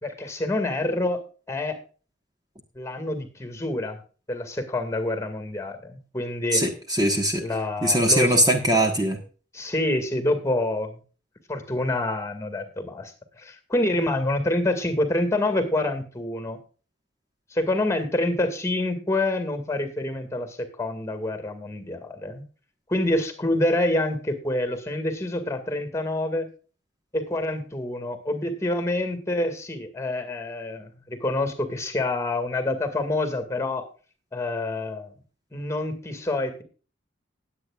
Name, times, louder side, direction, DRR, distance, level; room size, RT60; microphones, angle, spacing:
voice 1, 0.0-1.2 1.5-1.8 2.8-4.0 4.3-6.6 7.4-8.4 9.5-11.0 11.5-16.6 17.5-22.4 22.9-26.5 27.1-33.9 34.3-35.1 35.5-36.6, left 1 dB, 15° left, 8 dB, 2.1 m, -27 dB
voice 2, 6.5-7.4 7.8-9.2, right 1 dB, 20° right, 4 dB, 1.4 m, -21 dB
19.5 x 8.5 x 2.4 m, 0.37 s
head